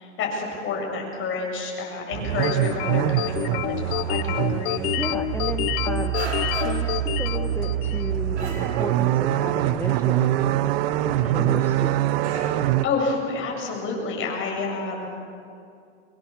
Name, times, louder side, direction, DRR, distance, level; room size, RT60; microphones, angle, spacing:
voice 1, 0.0-4.9 11.1-11.6 12.8-15.1, left 3 dB, 35° left, 0 dB, 7.6 m, -29 dB
sound 1, 2.1-12.9, right 13 dB, 55° right, 1.1 m, -24 dB
sound 2, 2.4-8.2, left 16 dB, 55° left, 0.8 m, -28 dB
sound 3, 3.2-3.4 3.6-4.3 4.7-4.8 5.4-5.8 6.1-7.0 7.4-8.0 8.4-9.2 9.5-9.7 10.0-10.1 10.3-11.0 11.3-11.5 11.7-11.8 12.2-12.4, right 3 dB, 85° right, 7.9 m, -37 dB
voice 2, 5.0-6.2 6.5-10.3 11.3-12.0, left 2 dB, 5° left, 3 dB, 1.3 m, -34 dB
24.5 x 22.0 x 7.1 m, 2.4 s
hypercardioid pair, 110°, 35 cm